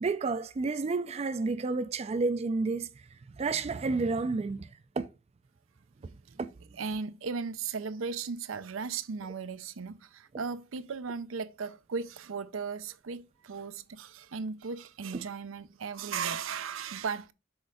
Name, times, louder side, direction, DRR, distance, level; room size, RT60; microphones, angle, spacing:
voice 1, 0.0-2.9 3.4-4.7 5.0-5.1 6.4-6.5, right 3 dB, 30° right, 0.4 m, -30 dB
voice 2, 6.8-17.3, right 5 dB, 85° right, 0.6 m, -36 dB
6.2 x 3.7 x 4.6 m
head